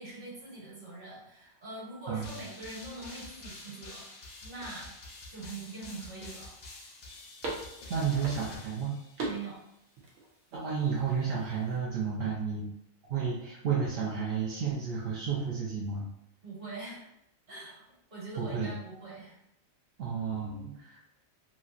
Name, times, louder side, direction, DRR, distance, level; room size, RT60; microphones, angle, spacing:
voice 1, 0.0-4.1 4.4-5.0 5.3-6.6 7.4-7.5 9.2-9.5 16.4-17.1 17.5-17.8 18.1-19.4, right 3 dB, 45° right, -7 dB, 1.4 m, -43 dB
sound 1, 2.2-9.5, left 2 dB, 60° left, 0.4 m, -47 dB
sound 2, 4.1-11.8, right 2 dB, 85° right, 1.2 m, -44 dB
voice 2, 7.9-8.9 10.5-12.7 13.1-16.0 18.4-18.7 20.0-21.0, right 6 dB, 60° right, -5 dB, 0.7 m, -31 dB
3.1 x 2.7 x 2.4 m, 0.81 s
omnidirectional pair, 1.4 m